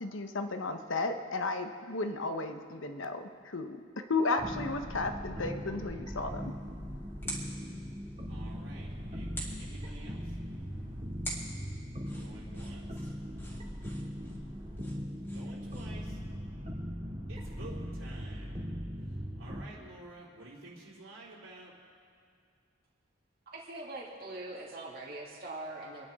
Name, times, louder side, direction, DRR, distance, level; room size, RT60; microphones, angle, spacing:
voice 1, 0.0-3.8 4.1-6.5, left 3 dB, 75° left, 7 dB, 1.0 m, -34 dB
sound 1, 4.4-19.6, equal, 30° right, 2.7 m, -40 dB
sound 2, 6.1-16.1, equal, 10° left, 2.7 m, -47 dB
voice 2, 8.3-9.3 9.6-10.2 12.2-13.1 15.3-16.2 17.3-18.6 19.4-21.7, right 2 dB, 85° right, -7 dB, 3.5 m, -50 dB
voice 3, 23.5-26.1, right 2 dB, 50° right, -4 dB, 2.7 m, -42 dB
28.5 x 10.5 x 3.7 m, 2.2 s
head